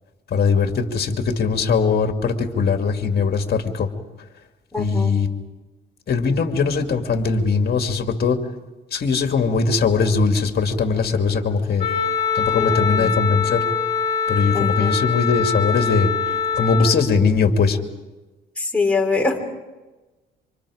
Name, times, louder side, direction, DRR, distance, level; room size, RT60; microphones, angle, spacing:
voice 1, 0.3-3.9 4.8-5.3 6.1-8.4 8.9-11.9 12.3-13.6 14.3-17.8, left 5 dB, 55° left, 6 dB, 2.4 m, -20 dB
voice 2, 4.7-5.1 12.5-13.2 14.5-14.9 18.6-19.4, left 3 dB, 5° left, 0 dB, 4.3 m, -23 dB
Wind instrument woodwind instrument, 11.8-17.0, left 6 dB, 35° left, 4.2 m, -23 dB
27.5 x 25.5 x 5.0 m, 1.2 s
cardioid pair, 90°, 20 cm